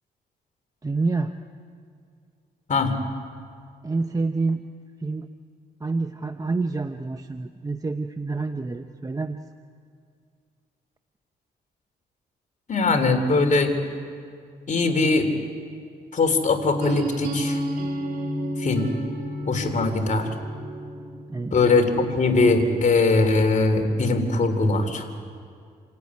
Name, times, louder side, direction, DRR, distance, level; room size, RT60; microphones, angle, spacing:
voice 1, 0.8-1.3 3.8-4.6 5.0-5.3 5.8-9.4 21.3-21.6, right 3 dB, 20° right, 7 dB, 0.9 m, -27 dB
voice 2, 12.7-13.7 14.7-15.3 16.1-17.6 18.6-18.9 19.5-20.3 21.5-25.1, left 3 dB, 45° left, 5 dB, 3.5 m, -21 dB
sound 1, 16.8-22.6, right 1 dB, 60° right, 4.0 m, -32 dB
27.5 x 16.5 x 9.7 m, 2.2 s
cardioid pair, 80°, 17 cm